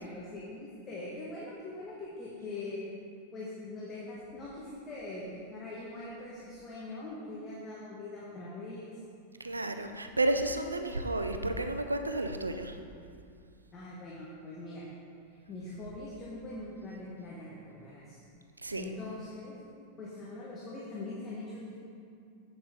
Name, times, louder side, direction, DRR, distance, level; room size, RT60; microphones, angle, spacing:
voice 1, 0.0-2.8 3.3-8.9 13.7-14.8 15.5-18.2 18.7-19.5 20.0-21.8, left 2 dB, 25° left, -6 dB, 1.3 m, -42 dB
voice 2, 9.4-12.7 18.6-18.8, right 2 dB, 80° right, 7 dB, 0.5 m, -31 dB
7.8 x 7.6 x 3.7 m, 2.4 s
figure-of-eight pair, 90°, 0 cm